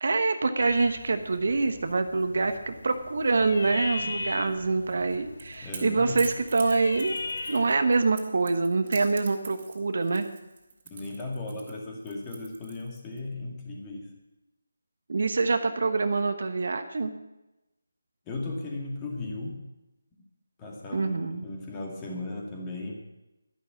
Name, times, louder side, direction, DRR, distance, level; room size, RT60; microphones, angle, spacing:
voice 1, 0.0-7.2 7.5-10.3 15.1-17.1 20.9-21.4, right 3 dB, 60° right, 8 dB, 1.1 m, -25 dB
sound 1, 0.6-7.8, left 3 dB, 60° left, 1.1 m, -39 dB
Crackle / Crack, 5.0-13.2, right 5 dB, 35° right, 2.6 m, -44 dB
voice 2, 5.6-6.2 10.9-14.1 18.3-19.6 20.6-22.9, left 2 dB, 15° left, -1 dB, 2.4 m, -36 dB
12.0 x 11.5 x 6.3 m, 0.98 s
figure-of-eight pair, 160°, 0 cm